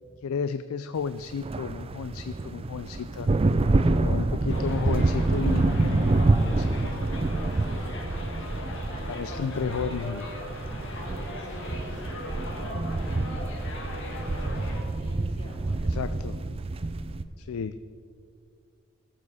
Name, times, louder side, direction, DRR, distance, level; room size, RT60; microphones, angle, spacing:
voice 1, 0.2-3.3 3.9-6.8 9.1-10.3 15.8-16.4 17.4-17.8, left 6 dB, 80° left, 12 dB, 0.4 m, -33 dB
sound 1, 1.2-17.2, right 2 dB, 25° right, 0.4 m, -27 dB
voice 2, 3.6-4.3 7.5-9.4 10.8-16.3, equal, 25° left, -5 dB, 3.4 m, -46 dB
Subway metro underground, 4.5-14.8, left 1 dB, 55° left, 1.9 m, -39 dB
17.0 x 7.6 x 4.8 m, 2.2 s
head